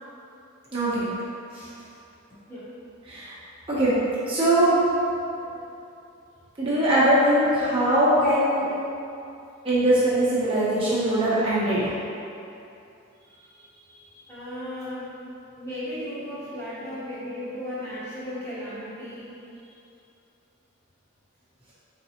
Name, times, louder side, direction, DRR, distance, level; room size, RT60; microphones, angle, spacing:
voice 1, 0.7-1.1 1.5-1.7 3.0-3.3 3.7-4.0 4.3-4.8 6.6-8.7 9.6-11.9, right 1 dB, 25° right, -10 dB, 0.7 m, -21 dB
voice 2, 14.3-15.1 15.6-19.3, left 1 dB, 10° left, -11 dB, 0.8 m, -35 dB
4.1 x 3.2 x 2.8 m, 2.7 s
head